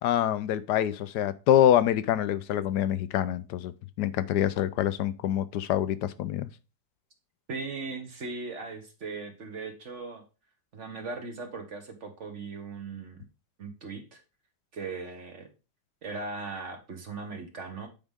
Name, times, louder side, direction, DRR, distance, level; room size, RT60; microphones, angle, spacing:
voice 1, 0.0-3.7 4.0-6.5, left 11 dB, 75° left, 1.1 m, -25 dB
voice 2, 7.5-10.2 10.7-13.2 13.6-14.2 14.7-15.5 16.0-17.9, right 4 dB, 45° right, 1.3 m, -38 dB
8.9 x 4.9 x 3.6 m
omnidirectional pair, 1.9 m